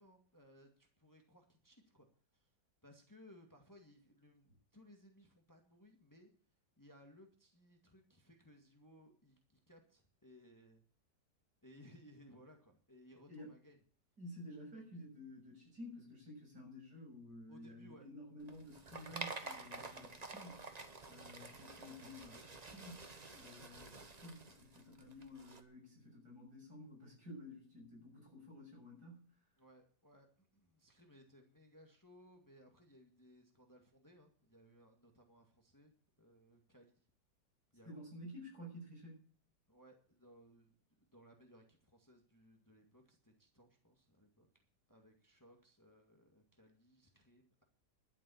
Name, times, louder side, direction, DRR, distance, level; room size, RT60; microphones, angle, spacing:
voice 1, 0.0-2.1 2.3-2.5 2.8-6.3 6.8-10.8 11.6-13.8 17.5-18.1 29.6-37.0 37.7-38.0 39.7-47.6, equal, 10° left, 3 dB, 2.0 m, -63 dB
voice 2, 14.2-29.3 37.8-39.2, left 1 dB, 65° right, -1 dB, 7.4 m, -52 dB
sound 1, 18.4-25.6, right 3 dB, 25° right, 1.2 m, -50 dB
12.0 x 7.3 x 8.5 m, 0.43 s
omnidirectional pair, 1.8 m